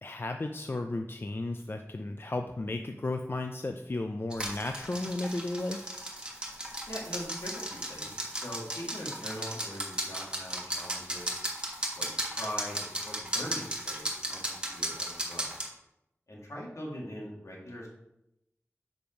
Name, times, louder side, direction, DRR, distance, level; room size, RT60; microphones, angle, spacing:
voice 1, 0.0-6.0, left 2 dB, 45° left, 5 dB, 0.5 m, -34 dB
sound 1, 4.3-15.7, right 1 dB, 20° right, 1.5 m, -36 dB
voice 2, 6.9-11.4 12.0-15.5 16.3-17.9, equal, 75° left, -3 dB, 2.3 m, -42 dB
6.9 x 5.3 x 4.5 m, 0.85 s
wide cardioid pair, 60°, 5 cm